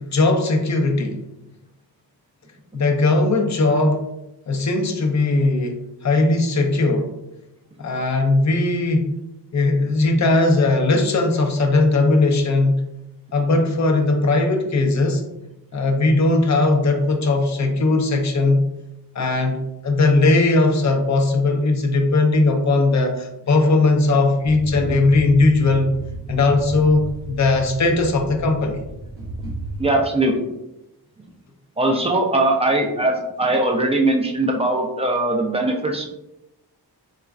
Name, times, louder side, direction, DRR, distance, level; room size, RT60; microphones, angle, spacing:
voice 1, 0.1-1.2 2.7-4.0 4.5-7.1 7.8-9.1 9.5-12.8 13.3-15.2 15.7-18.7 19.2-25.9 26.3-28.8, left 2 dB, 45° left, 4 dB, 0.4 m, -18 dB
sound 1, 24.4-29.8, right 1 dB, 30° right, 0.7 m, -34 dB
voice 2, 29.8-30.4 31.8-36.1, right 2 dB, 15° right, 1 dB, 0.3 m, -20 dB
4.2 x 2.4 x 2.3 m, 0.88 s
wide cardioid pair, 165°, 41 cm